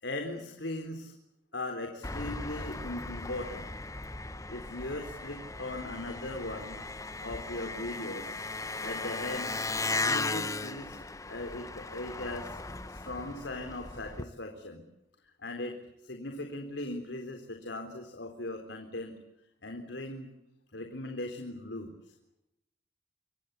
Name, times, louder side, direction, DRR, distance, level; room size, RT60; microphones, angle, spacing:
voice 1, 0.0-1.1 1.5-3.7 4.5-6.8 7.2-8.4 8.8-9.5 10.0-12.6 12.8-14.8 15.4-15.8 16.0-19.2 19.6-20.3 20.7-22.1, left 2 dB, 85° left, 5 dB, 4.0 m, -39 dB
Engine, 2.0-14.2, left 3 dB, 20° left, 1.1 m, -37 dB
28.5 x 25.0 x 8.4 m, 0.86 s
head